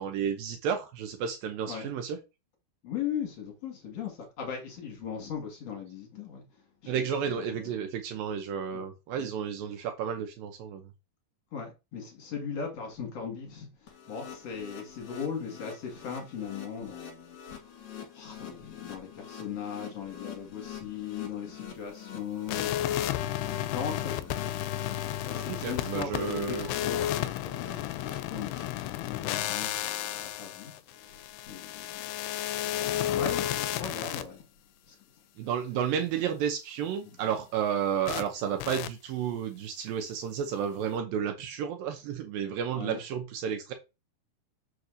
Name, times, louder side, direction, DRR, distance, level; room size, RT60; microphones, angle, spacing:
voice 1, 0.0-2.2 6.9-10.9 25.5-26.7 35.4-43.7, right 8 dB, 80° right, 2.1 m, -32 dB
voice 2, 2.8-7.0 7.4-7.8 8.7-8.9 9.1-9.3 9.7-9.8 11.5-24.5 25.2-32.1 32.5-34.4 34.9-35.0 38.4-38.5 42.7-43.0, left 7 dB, 45° left, 2.5 m, -39 dB
sound 1, 13.9-28.6, left 8 dB, 65° left, 2.6 m, -46 dB
sound 2, 22.5-34.2 38.1-38.2 38.6-38.9, left 12 dB, 80° left, 2.5 m, -32 dB
6.9 x 6.4 x 2.6 m
omnidirectional pair, 5.0 m